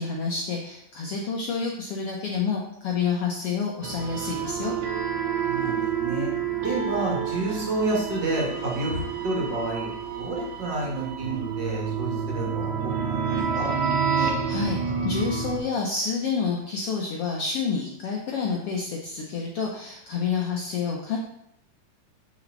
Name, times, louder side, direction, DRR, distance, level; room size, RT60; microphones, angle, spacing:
voice 1, 0.0-4.7 14.2-14.8 15.0-21.2, left 5 dB, 75° left, -1 dB, 1.4 m, -28 dB
sound 1, 3.8-15.6, right 6 dB, 60° right, 1.7 m, -29 dB
voice 2, 5.4-6.3 6.6-13.7, right 2 dB, 40° right, -2 dB, 2.2 m, -30 dB
8.5 x 6.5 x 4.0 m, 0.77 s
omnidirectional pair, 3.9 m